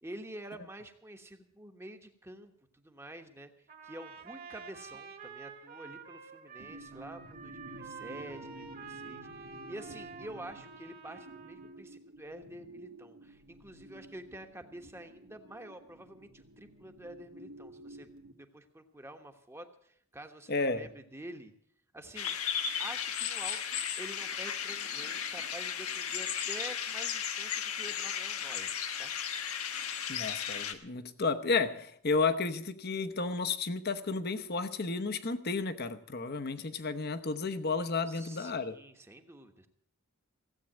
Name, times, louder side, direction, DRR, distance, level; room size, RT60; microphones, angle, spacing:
voice 1, 0.0-18.1 18.3-21.5 21.9-29.1 38.1-39.7, right 1 dB, 10° right, 1.2 m, -48 dB
Trumpet, 3.7-11.8, right 6 dB, 45° right, 1.8 m, -49 dB
sound 1, 6.6-18.3, right 1 dB, 70° right, 1.7 m, -51 dB
voice 2, 20.5-20.9 30.1-38.8, left 4 dB, 45° left, 1.0 m, -32 dB
sound 2, 22.2-30.7, left 8 dB, 80° left, 1.4 m, -35 dB
16.5 x 8.4 x 8.8 m
head